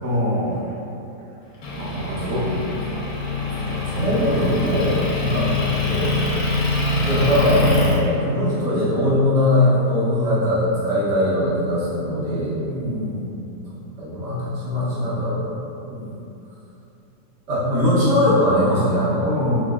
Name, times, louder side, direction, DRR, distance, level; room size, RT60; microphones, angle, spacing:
voice 1, 0.0-0.7 1.8-2.4 3.6-4.0 5.2-5.5 6.9-7.1 12.6-13.4 15.9-16.2 19.2-19.6, equal, 60° right, -7 dB, 0.6 m, -27 dB
Motor vehicle (road) / Engine, 1.6-8.0, left 3 dB, 70° left, 1.1 m, -24 dB
voice 2, 3.5-5.0 5.3-5.5 5.8-6.2 7.0-12.6 14.0-15.6 17.5-19.6, left 1 dB, 90° right, -11 dB, 1.7 m, -21 dB
4.3 x 2.0 x 2.4 m, 2.8 s
omnidirectional pair, 1.8 m